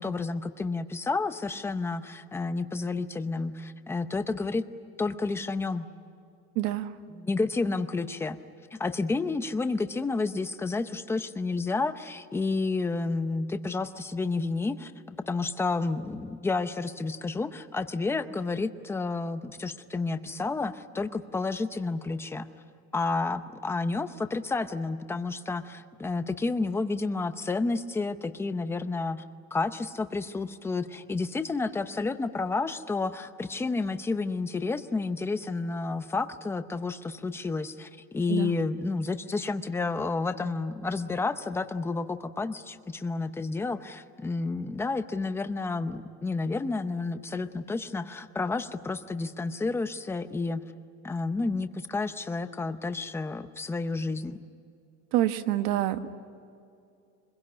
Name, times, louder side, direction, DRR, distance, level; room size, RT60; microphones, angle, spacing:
voice 1, 0.0-4.6 5.0-5.9 7.1-8.4 8.7-22.5 22.9-29.2 29.5-50.6 51.0-54.4, left 3 dB, 10° left, 10 dB, 0.6 m, -30 dB
voice 2, 6.5-6.9 38.3-38.5 55.1-56.1, right 13 dB, 75° right, 9 dB, 1.4 m, -27 dB
25.0 x 22.0 x 9.6 m, 2.5 s
cardioid pair, 175°, 31 cm